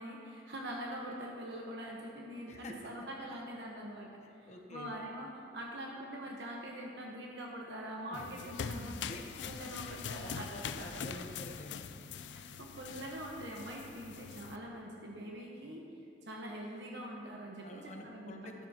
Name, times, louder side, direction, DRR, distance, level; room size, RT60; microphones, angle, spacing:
voice 1, 0.0-9.1 9.4-10.5 10.8-11.2 12.3-15.8 16.2-18.5, equal, 75° right, -2 dB, 1.2 m, -44 dB
voice 2, 2.5-2.8 4.4-4.9 8.1-8.4 9.1-9.5 9.8-11.9 17.6-18.7, left 1 dB, 40° left, 3 dB, 1.0 m, -48 dB
sound 1, 8.1-14.6, left 6 dB, 90° left, 0.4 m, -43 dB
12.5 x 12.0 x 2.9 m, 2.5 s
head